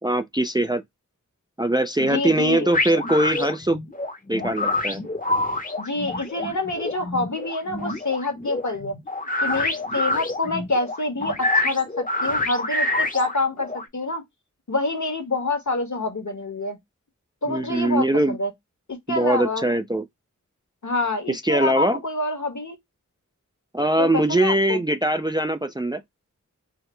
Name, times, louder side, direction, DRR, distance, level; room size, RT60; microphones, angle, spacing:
voice 1, 0.0-0.8 1.6-3.8 4.3-5.0 17.5-18.4 19.1-20.0 21.3-22.0 23.7-26.0, right 1 dB, 15° right, 0.4 m, -22 dB
voice 2, 2.0-2.7 5.8-8.9 9.4-14.2 14.7-16.8 17.4-18.5 19.1-19.7 20.8-22.8 24.0-24.8, left 2 dB, 65° left, 1.3 m, -27 dB
sound 1, 2.7-13.9, left 2 dB, 25° left, 0.8 m, -27 dB
4.8 x 2.1 x 3.1 m
wide cardioid pair, 40°, 32 cm